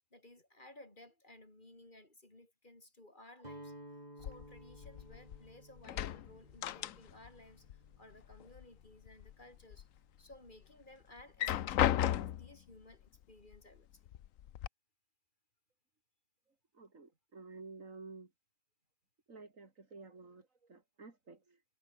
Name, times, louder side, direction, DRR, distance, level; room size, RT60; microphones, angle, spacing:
voice 1, 0.1-3.8 4.2-9.9 10.2-14.1, left 1 dB, 40° left, 5.4 m, -58 dB
Guitar, 3.4-9.4, right 1 dB, 30° right, 6.5 m, -56 dB
sound 1, 4.2-5.5 5.8-7.4 7.6-8.6 9.1-9.8 10.3-10.4 11.2-12.6 13.5-13.6 14.1-14.7, left 12 dB, 85° left, 1.1 m, -35 dB
voice 2, 16.5-18.3 19.3-21.6, right 3 dB, 85° right, 3.6 m, -52 dB
omnidirectional pair, 1.3 m